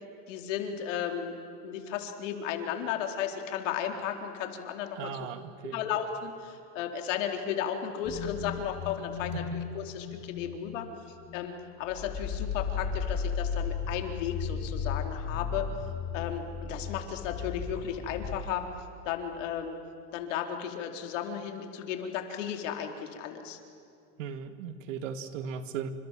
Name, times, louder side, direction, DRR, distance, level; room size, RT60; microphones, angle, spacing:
voice 1, 0.3-1.3 1.6-5.1 5.7-10.9 11.3-15.7 16.1-18.7 19.0-19.7 20.1-23.6, left 9 dB, 80° left, 4 dB, 4.0 m, -34 dB
voice 2, 5.0-5.8 24.2-25.9, right 7 dB, 85° right, 10 dB, 2.3 m, -37 dB
sound 1, 8.0-10.7 11.1-11.5 11.8-18.4, left 6 dB, 25° left, 7.9 m, -35 dB
29.0 x 26.5 x 7.6 m, 2.6 s
supercardioid pair, 165°, 37 cm